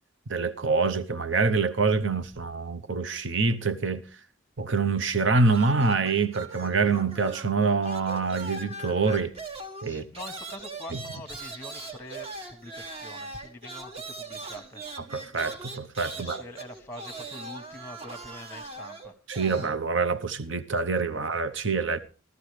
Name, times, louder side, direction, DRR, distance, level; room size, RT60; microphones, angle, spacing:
voice 1, 0.3-4.0 4.6-9.3 9.8-10.0 10.9-11.0 15.0-16.4 19.3-22.0, right 4 dB, 70° right, 0.8 m, -26 dB
sound 1, 5.4-7.6 7.8-19.8, right 3 dB, 30° right, 1.3 m, -40 dB
voice 2, 9.8-14.8 16.1-19.1, left 1 dB, 10° left, 1.1 m, -44 dB
14.0 x 14.0 x 3.2 m
head